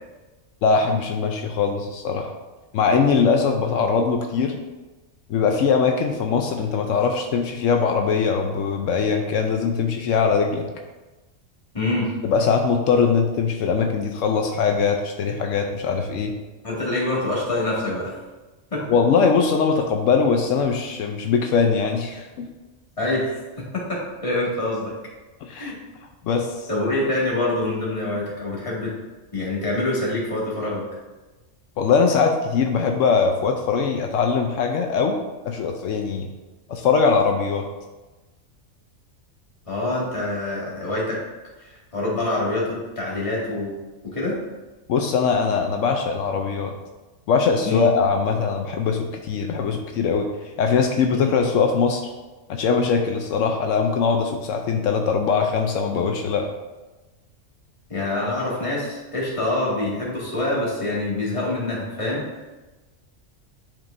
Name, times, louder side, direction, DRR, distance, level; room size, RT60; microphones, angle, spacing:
voice 1, 0.6-2.3 2.7-4.6 5.3-10.7 12.2-16.3 18.9-22.5 25.4-25.7 26.2-26.7 31.8-35.2 35.4-36.3 36.7-37.6 44.9-46.7 47.3-50.3 50.6-52.0 52.5-56.5, left 5 dB, 85° left, 3 dB, 1.0 m, -21 dB
voice 2, 11.7-12.1 16.6-18.2 18.7-18.8 23.0-24.9 25.6-25.8 26.7-28.9 29.3-30.8 39.7-41.2 41.6-43.7 44.0-44.4 47.6-47.9 51.1-51.3 57.9-62.2, left 2 dB, 25° left, -6 dB, 1.9 m, -25 dB
10.0 x 4.5 x 2.6 m, 1.2 s
omnidirectional pair, 1.3 m